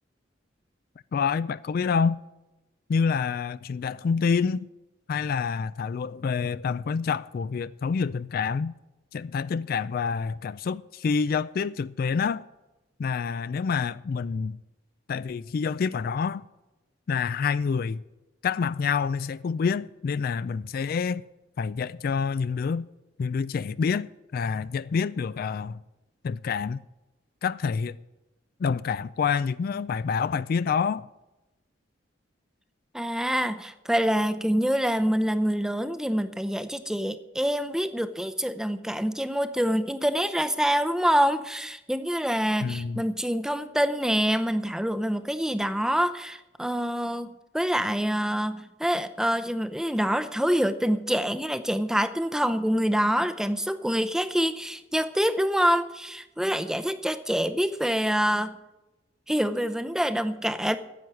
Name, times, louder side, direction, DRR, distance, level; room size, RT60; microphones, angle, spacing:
voice 1, 1.1-2.2 2.9-4.7 5.1-8.7 9.1-12.4 13.0-14.6 15.1-16.4 17.1-18.0 18.4-21.2 21.6-22.9 23.2-25.8 26.2-26.8 27.4-28.0 28.6-31.1 42.6-43.0, left 5 dB, 50° left, 0.3 m, -27 dB
voice 2, 32.9-58.6 59.3-60.8, equal, 5° right, 0.6 m, -26 dB
10.0 x 7.8 x 9.5 m
head